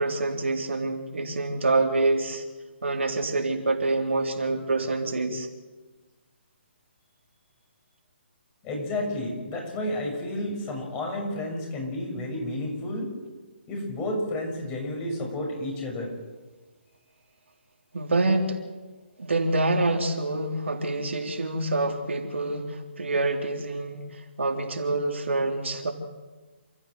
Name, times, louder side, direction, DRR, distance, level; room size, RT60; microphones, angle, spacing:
voice 1, 0.0-2.4 2.8-5.5 17.9-18.6 19.2-25.9, right 2 dB, 75° right, 2 dB, 3.5 m, -26 dB
voice 2, 8.6-13.1 13.7-16.1, left 1 dB, 20° left, 1 dB, 6.5 m, -31 dB
28.5 x 14.5 x 7.9 m, 1.3 s
figure-of-eight pair, 145°, 6 cm